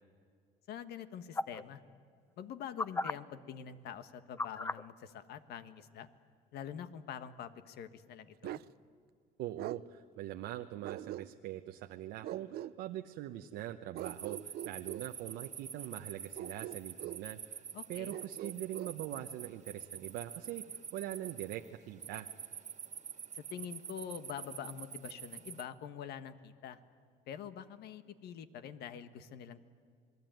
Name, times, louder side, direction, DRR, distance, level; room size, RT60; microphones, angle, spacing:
voice 1, 0.7-1.8 2.4-6.1 6.5-8.6 17.7-18.2 23.3-26.8 27.3-29.6, left 8 dB, 75° left, 11 dB, 1.5 m, -45 dB
sound 1, 1.3-1.6 2.8-3.1 4.4-4.8 5.8-5.9, left 2 dB, 15° left, 0.6 m, -34 dB
Bark, 8.4-8.7 9.6-9.8 10.8-11.6 12.2-12.7 13.9-15.1 16.3-17.2 18.1-19.0, right 13 dB, 70° right, 0.6 m, -43 dB
voice 2, 9.4-17.6 17.9-20.7 20.9-22.3, right 13 dB, 90° right, 5 dB, 0.9 m, -42 dB
sound 2, 14.0-25.6, right 7 dB, 45° right, 1.8 m, -47 dB
27.5 x 20.5 x 9.2 m, 2.2 s
cardioid pair, 110°, 17 cm